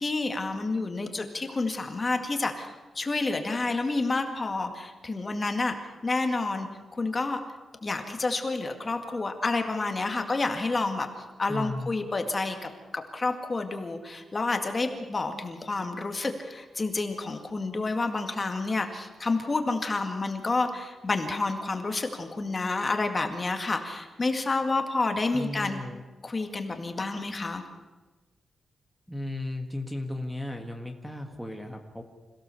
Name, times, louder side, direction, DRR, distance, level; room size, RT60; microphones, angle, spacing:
voice 1, 0.0-5.8 6.0-6.7 7.0-7.4 7.8-11.1 11.4-25.8 26.2-27.6, left 3 dB, 25° left, 5 dB, 2.0 m, -29 dB
voice 2, 11.5-11.9 25.3-26.0 29.1-32.0, left 1 dB, ahead, 4 dB, 1.8 m, -35 dB
27.0 x 16.5 x 7.0 m, 1.2 s
wide cardioid pair, 140°, 0 cm